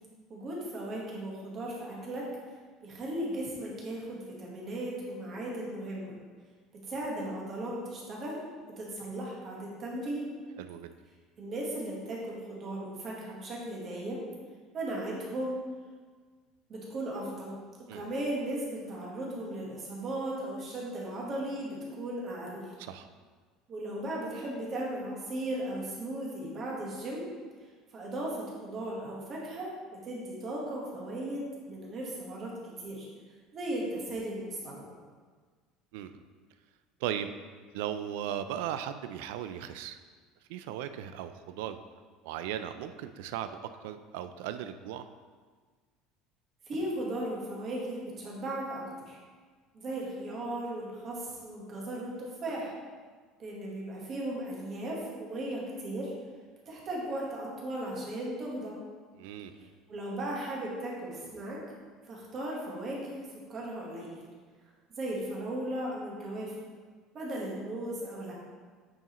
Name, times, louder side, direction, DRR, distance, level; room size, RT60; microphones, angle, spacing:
voice 1, 0.3-2.5 2.8-6.1 6.9-8.4 8.8-10.3 11.4-14.2 14.7-15.6 16.7-17.6 17.9-22.7 23.7-27.3 27.9-32.5 32.8-33.1 33.5-34.8 46.7-49.2 49.7-52.7 53.4-56.1 56.7-58.8 59.5-61.6 62.1-64.2 65.0-66.5 67.1-68.3, right 1 dB, 25° right, -3 dB, 1.3 m, -36 dB
voice 2, 10.6-10.9 17.9-18.0 22.8-23.1 35.9-36.2 37.0-37.3 37.7-40.0 40.5-41.8 42.2-45.1 59.2-59.7, right 10 dB, 80° right, 10 dB, 0.4 m, -37 dB
8.7 x 4.7 x 3.0 m, 1.5 s
cardioid pair, 180°, 0 cm